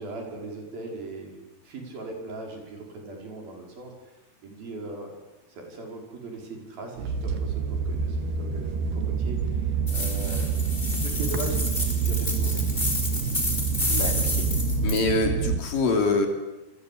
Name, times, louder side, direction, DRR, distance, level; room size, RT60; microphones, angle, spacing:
voice 1, 0.0-1.4 1.6-3.9 4.4-5.1 5.5-10.5 11.0-12.7, right 2 dB, 60° right, 1 dB, 7.3 m, -39 dB
sound 1, 7.0-15.6, right 5 dB, 75° right, 3.8 m, -27 dB
sound 2, 9.9-15.0, left 2 dB, 15° left, 4.4 m, -30 dB
voice 2, 13.9-14.5 14.8-16.3, left 3 dB, 60° left, 4 dB, 4.5 m, -25 dB
28.5 x 21.5 x 8.7 m, 1.0 s
omnidirectional pair, 4.8 m